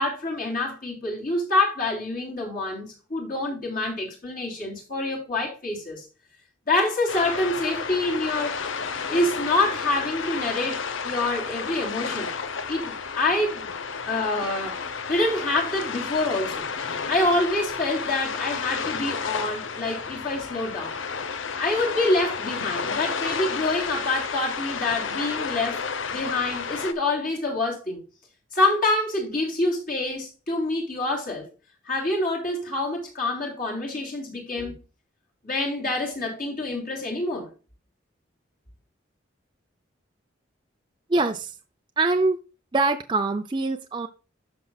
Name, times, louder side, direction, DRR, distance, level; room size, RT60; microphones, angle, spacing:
voice 1, 0.0-6.0 6.7-8.7 9.1-12.3 12.7-13.7 14.0-16.7 17.1-21.0 21.6-25.8 26.1-28.0 28.5-31.5 31.9-34.7 35.4-37.5, left 2 dB, 45° left, 3.1 m, -26 dB
sound 1, 7.1-26.9, left 5 dB, 75° left, 0.8 m, -31 dB
voice 2, 41.1-41.6 42.0-42.4 42.7-44.1, right 3 dB, 25° right, 0.5 m, -23 dB
12.0 x 5.5 x 2.3 m
head